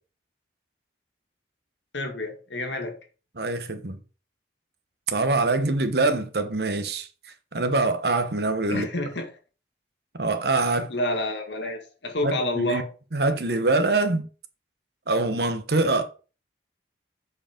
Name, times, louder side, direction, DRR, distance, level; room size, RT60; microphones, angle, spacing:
voice 1, 1.9-3.0 8.7-9.3 10.9-12.9, left 1 dB, 75° left, 1.9 m, -28 dB
voice 2, 3.4-4.0 5.1-7.1 7.5-8.9 10.2-10.9 12.2-12.8 13.1-14.3 15.1-16.0, right 3 dB, 60° right, 1.0 m, -24 dB
7.7 x 5.0 x 5.0 m
head